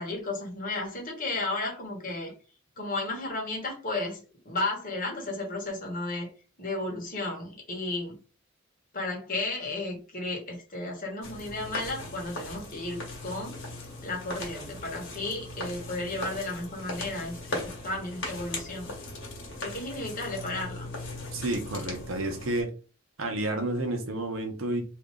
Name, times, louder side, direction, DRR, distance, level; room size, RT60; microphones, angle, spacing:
voice 1, 0.0-2.3 2.8-6.3 6.6-8.2 8.9-13.6 14.0-18.9 19.6-20.9, left 2 dB, 45° left, 0 dB, 1.4 m, -33 dB
sound 1, 11.2-22.6, left 2 dB, 65° left, 1.6 m, -39 dB
voice 2, 21.3-22.7 23.2-24.8, right 1 dB, 90° right, 5 dB, 0.9 m, -30 dB
3.0 x 2.6 x 3.7 m, 0.34 s
head